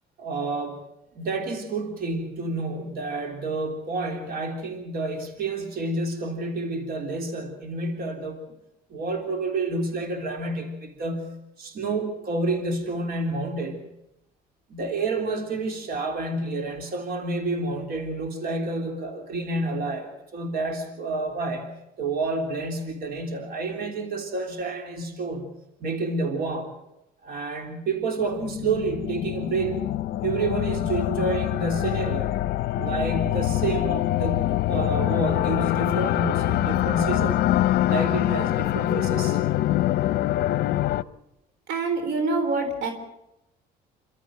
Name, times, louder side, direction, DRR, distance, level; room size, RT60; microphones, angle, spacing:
voice 1, 0.2-0.8 1.2-8.4 8.9-13.9 14.7-21.7 22.0-25.5 25.8-26.7 27.2-29.9 30.2-32.4 32.8-37.4 37.9-39.4, right 3 dB, 65° right, 5 dB, 3.6 m, -29 dB
sound 1, 28.2-41.0, left 14 dB, 70° left, 0.7 m, -24 dB
voice 2, 41.7-42.9, right 3 dB, 85° right, 7 dB, 3.7 m, -25 dB
27.5 x 13.0 x 7.8 m, 0.89 s
cardioid pair, 110°, 17 cm